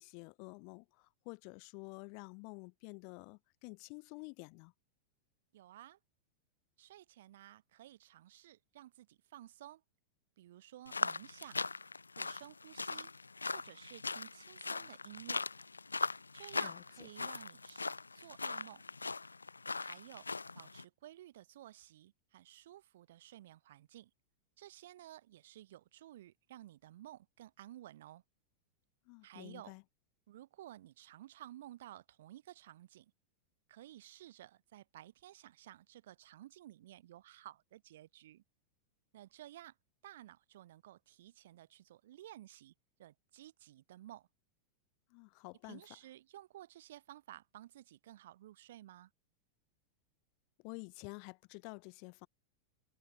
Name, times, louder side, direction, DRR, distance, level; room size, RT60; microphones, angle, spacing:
voice 1, 0.0-4.7 16.6-17.1 29.1-29.8 45.1-45.8 50.6-52.3, left 40 dB or more, 45° left, 2.6 m, -50 dB
voice 2, 5.5-6.0 6.8-9.8 10.4-11.6 12.2-13.1 13.5-15.5 16.3-18.8 19.8-24.1 24.6-28.2 29.2-29.8 30.3-33.1 33.7-38.4 39.1-39.8 40.0-42.7 43.0-44.3 45.6-49.1, right 13 dB, 55° right, 5.5 m, -54 dB
sound 1, 10.9-20.8, left 4 dB, 80° left, 0.9 m, -40 dB
figure-of-eight pair, 90°, 0 cm